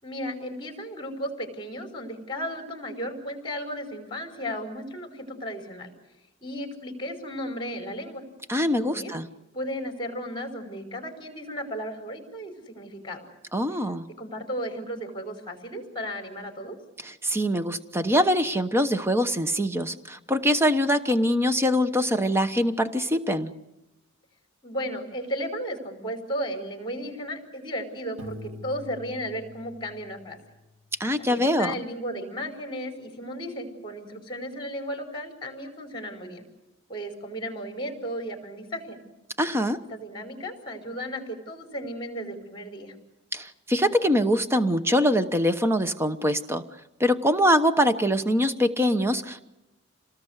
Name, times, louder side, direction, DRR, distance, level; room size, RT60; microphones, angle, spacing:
voice 1, 0.0-5.9 6.4-8.2 8.7-9.1 9.5-13.3 13.7-13.8 14.2-16.8 24.6-30.4 31.2-36.4 36.9-39.0 39.9-42.9, equal, 20° left, 4 dB, 5.0 m, -34 dB
voice 2, 8.5-9.3 13.5-14.1 17.0-23.5 31.0-31.7 39.4-39.8 43.3-46.6 47.0-49.5, equal, 10° right, 10 dB, 1.0 m, -23 dB
Piano, 28.2-30.9, left 2 dB, 75° right, 3.0 m, -44 dB
28.0 x 19.5 x 8.2 m, 0.99 s
head